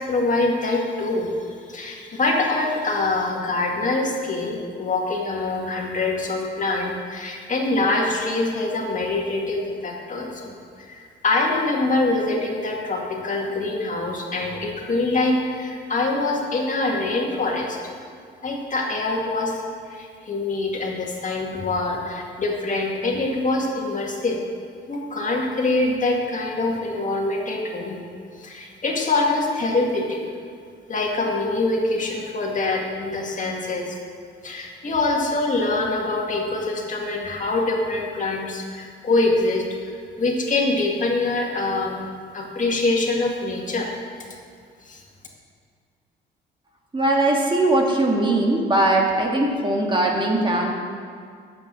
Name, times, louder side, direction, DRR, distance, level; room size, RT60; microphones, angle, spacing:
voice 1, 0.0-1.3 1.6-17.9 18.4-24.4 24.9-28.0 28.3-30.2 30.9-34.0 34.4-39.7 40.2-42.0 42.3-43.9 44.9-45.0, left 2 dB, 40° left, -1 dB, 1.9 m, -24 dB
voice 2, 46.9-50.7, right 2 dB, 25° right, -1 dB, 1.7 m, -20 dB
9.4 x 7.9 x 6.2 m, 2.2 s
cardioid pair, 90°, 20 cm